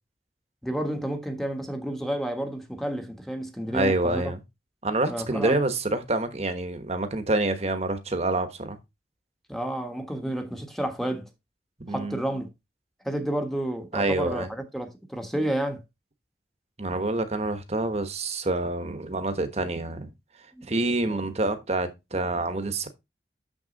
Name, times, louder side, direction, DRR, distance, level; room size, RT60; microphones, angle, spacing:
voice 1, 0.6-4.3 5.1-5.6 9.5-11.3 11.9-12.5 13.0-15.8 20.6-20.7 21.1-21.2, right 1 dB, ahead, 1.3 m, -30 dB
voice 2, 3.7-4.4 4.8-8.8 11.8-12.2 13.9-14.5 16.8-20.1 20.7-22.9, right 2 dB, 40° right, 1.2 m, -27 dB
6.9 x 6.4 x 4.0 m
head